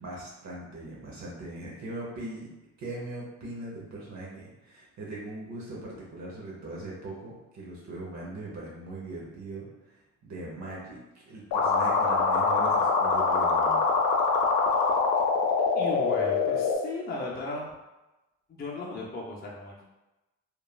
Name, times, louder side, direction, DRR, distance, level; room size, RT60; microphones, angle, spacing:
voice 1, 0.0-2.5 2.8-11.0 11.2-13.8, right 2 dB, 65° right, -4 dB, 0.8 m, -40 dB
sound 1, 11.5-16.8, left 4 dB, 80° left, 0.5 m, -24 dB
voice 2, 15.8-17.7 18.5-19.8, left 2 dB, 30° left, -3 dB, 0.5 m, -36 dB
3.1 x 2.3 x 2.2 m, 1.0 s
cardioid pair, 90°, 30 cm